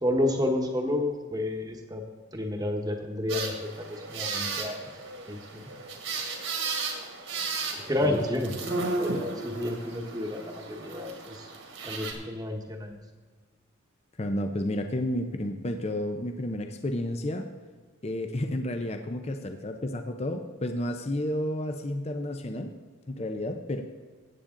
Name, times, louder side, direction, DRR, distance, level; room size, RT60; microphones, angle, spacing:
voice 1, 0.0-2.0 2.3-4.9 5.3-5.7 7.7-11.5 11.8-13.0, left 1 dB, 20° right, 3 dB, 1.1 m, -30 dB
sound 1, 3.3-12.1, right 3 dB, 65° right, 1.9 m, -34 dB
voice 2, 14.2-17.5 18.0-22.7 23.1-23.8, left 1 dB, 30° left, 6 dB, 0.6 m, -31 dB
14.5 x 8.7 x 3.8 m, 1.4 s
head